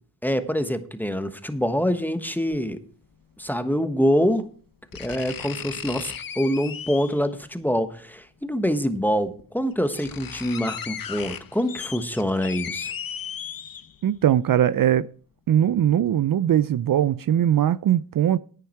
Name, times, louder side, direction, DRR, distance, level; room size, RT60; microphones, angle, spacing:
voice 1, 0.2-2.8 3.4-4.4 5.0-12.9, equal, 5° left, 1.3 m, -25 dB
sound 1, 2.5-2.6 4.0-4.1 4.9-7.3 8.6-8.7 9.4-9.5 9.7-14.2 14.6-14.7, left 8 dB, 55° left, 0.9 m, -36 dB
voice 2, 14.0-15.1 15.5-18.4, right 10 dB, 55° right, 0.5 m, -20 dB
11.0 x 9.2 x 4.4 m
cardioid pair, 55°, 40 cm